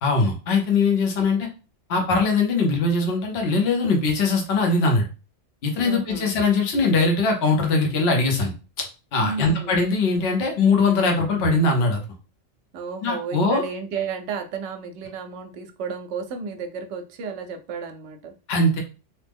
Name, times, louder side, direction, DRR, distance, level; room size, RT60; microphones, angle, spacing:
voice 1, 0.0-1.5 1.9-5.1 5.6-8.9 9.1-12.0 13.0-13.6 18.5-18.8, left 3 dB, 60° left, 2 dB, 1.0 m, -21 dB
voice 2, 5.8-6.3 9.2-9.8 12.7-18.3, right 5 dB, 70° right, 6 dB, 0.8 m, -32 dB
3.0 x 2.0 x 3.4 m, 0.33 s
omnidirectional pair, 1.3 m